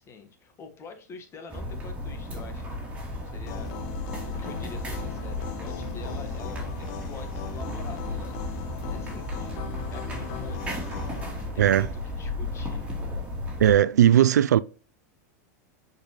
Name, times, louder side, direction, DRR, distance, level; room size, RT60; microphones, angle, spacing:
voice 1, 0.0-2.8 3.1-3.7 4.2-8.4 8.9-9.5 9.9-10.6 11.4-12.9, left 4 dB, 30° left, 1.5 m, -46 dB
sound 1, 1.5-13.8, left 1 dB, 15° right, 3.0 m, -34 dB
sound 2, 3.5-11.3, left 9 dB, 55° left, 1.0 m, -39 dB
voice 2, 11.6-11.9 13.6-14.6, right 10 dB, 85° right, 0.4 m, -18 dB
6.6 x 5.2 x 3.1 m
hypercardioid pair, 105°, 9 cm